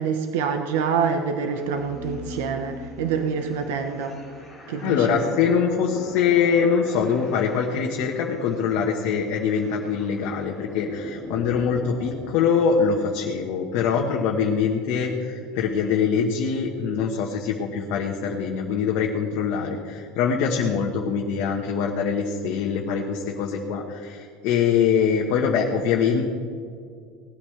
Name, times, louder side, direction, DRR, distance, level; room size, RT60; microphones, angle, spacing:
voice 1, 0.0-4.2 4.7-5.2, right 6 dB, 85° right, 6 dB, 1.0 m, -26 dB
sound 1, 1.4-13.1, left 1 dB, ahead, 2.7 m, -41 dB
voice 2, 4.8-26.2, left 6 dB, 50° left, 0 dB, 1.2 m, -23 dB
19.0 x 12.5 x 3.3 m, 2.2 s
cardioid pair, 175°, 0 cm